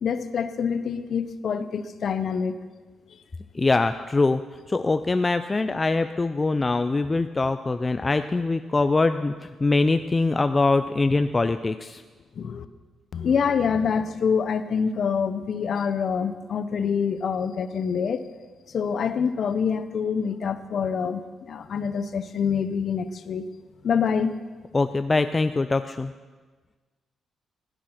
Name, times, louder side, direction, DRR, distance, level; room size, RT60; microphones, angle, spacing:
voice 1, 0.0-2.6 12.4-12.7 13.1-18.3 18.7-23.5 23.8-24.3, left 6 dB, 55° left, 12 dB, 0.8 m, -26 dB
voice 2, 3.5-4.4 4.7-12.0 24.7-26.1, left 3 dB, 25° left, 9 dB, 0.4 m, -23 dB
16.5 x 10.5 x 5.9 m, 1.4 s
cardioid pair, 110°, 0 cm